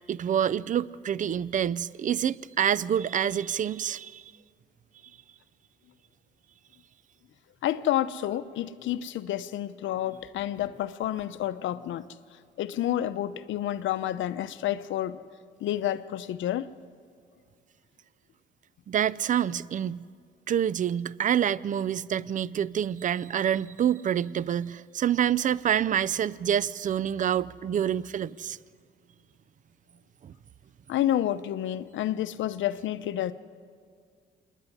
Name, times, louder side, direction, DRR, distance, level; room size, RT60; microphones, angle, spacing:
voice 1, 0.1-4.2 18.9-20.0 20.5-28.6 30.2-30.3, right 9 dB, 40° right, 0.5 m, -27 dB
voice 2, 7.6-12.1 12.6-15.2 15.6-16.7 30.9-33.3, left 12 dB, 75° left, 0.7 m, -29 dB
27.0 x 10.0 x 9.8 m
cardioid pair, 90°, 20 cm